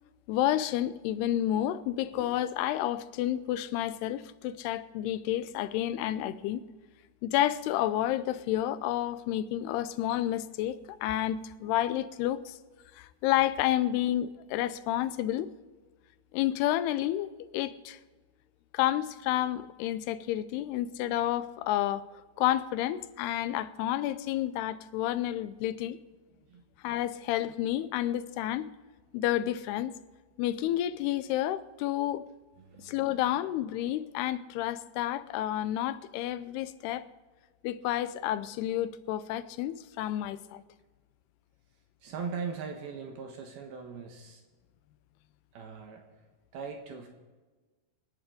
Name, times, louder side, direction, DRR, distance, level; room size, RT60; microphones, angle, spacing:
voice 1, 0.3-6.6 7.2-12.6 13.0-15.5 16.3-18.0 18.7-22.0 22.4-26.0 26.8-28.7 29.1-29.9 30.4-32.2 32.8-37.0 37.6-40.6, left 13 dB, 85° left, 2.7 m, -30 dB
voice 2, 32.6-33.2 42.0-44.4 45.5-46.0 46.5-47.1, right 5 dB, 75° right, 3.1 m, -40 dB
26.5 x 10.5 x 3.9 m
omnidirectional pair, 4.6 m